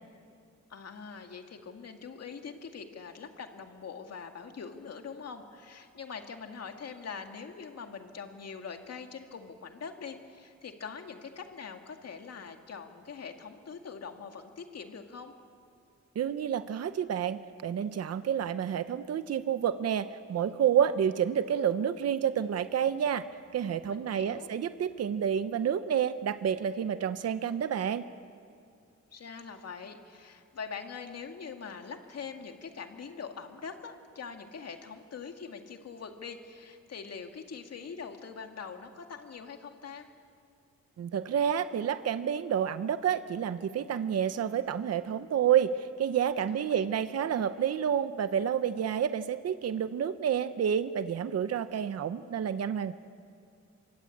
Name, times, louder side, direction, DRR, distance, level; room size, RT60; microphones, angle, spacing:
voice 1, 0.7-15.3 23.9-24.5 29.1-40.1 46.5-46.9, left 5 dB, 55° left, 5 dB, 2.2 m, -43 dB
voice 2, 16.2-23.2 23.5-28.1 41.0-53.0, right 8 dB, 55° right, 12 dB, 0.8 m, -29 dB
27.0 x 23.0 x 8.6 m, 2.4 s
wide cardioid pair, 165°, 30 cm